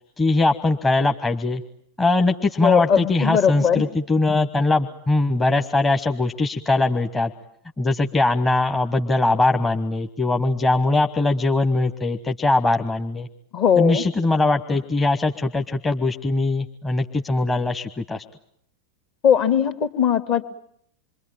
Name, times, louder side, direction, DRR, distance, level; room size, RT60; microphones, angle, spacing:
voice 1, 0.2-1.6 2.0-7.3 7.8-13.3 13.8-18.2, left 2 dB, 15° left, 4 dB, 1.3 m, -21 dB
voice 2, 2.6-3.8 13.5-14.0 19.2-20.4, left 8 dB, 40° left, 10 dB, 2.3 m, -19 dB
28.0 x 24.0 x 9.0 m, 0.71 s
figure-of-eight pair, 90°, 0 cm